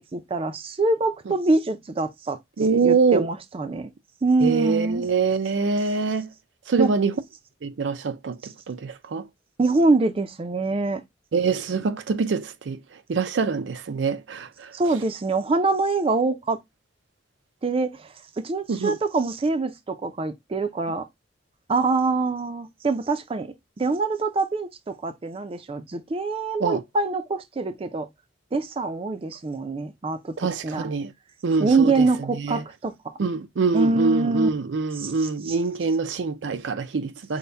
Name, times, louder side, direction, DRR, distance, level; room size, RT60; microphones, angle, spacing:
voice 1, 0.1-3.9 4.2-5.1 6.8-6.9 9.6-11.0 14.7-16.6 17.6-18.1 18.4-21.1 21.7-23.5 23.8-28.1 28.5-30.3 30.6-30.9 31.6-32.9 33.7-34.5 35.0-35.5, right 3 dB, 30° right, 0.4 m, -24 dB
voice 2, 2.6-3.3 4.4-6.3 6.7-7.2 7.6-9.3 11.3-12.8 13.1-14.7 18.7-19.0 26.6-26.8 30.4-31.1 31.4-32.6 33.2-37.4, right 4 dB, 85° right, 0.5 m, -24 dB
5.5 x 2.1 x 3.3 m
head